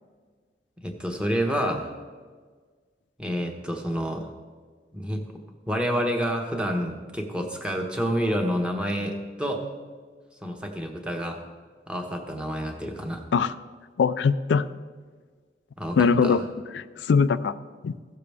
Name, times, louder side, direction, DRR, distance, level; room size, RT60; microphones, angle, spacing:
voice 1, 0.8-1.9 3.2-4.3 4.9-5.2 5.7-9.6 10.4-11.4 11.9-13.2 15.8-16.4, equal, 5° right, 2 dB, 1.0 m, -28 dB
voice 2, 14.0-14.6 16.0-16.4 16.7-17.5 17.8-18.0, left 5 dB, 85° left, 12 dB, 0.4 m, -21 dB
16.0 x 6.7 x 3.4 m, 1.5 s
head